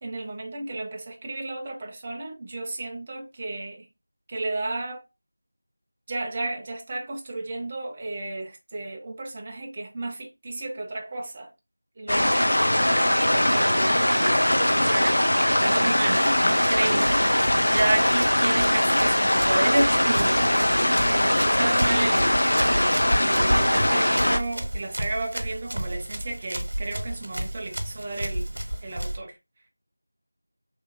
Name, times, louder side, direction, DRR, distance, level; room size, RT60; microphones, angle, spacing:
voice 1, 0.0-3.9 4.3-5.0 6.1-11.5 12.0-22.4 23.2-28.5 28.8-29.3, right 2 dB, 20° right, 0.4 m, -32 dB
sound 1, 12.1-24.4, left 1 dB, 75° left, 0.5 m, -21 dB
Run, 15.9-29.2, right 1 dB, 70° right, 0.7 m, -32 dB
2.8 x 2.2 x 2.3 m
figure-of-eight pair, 175°, 0 cm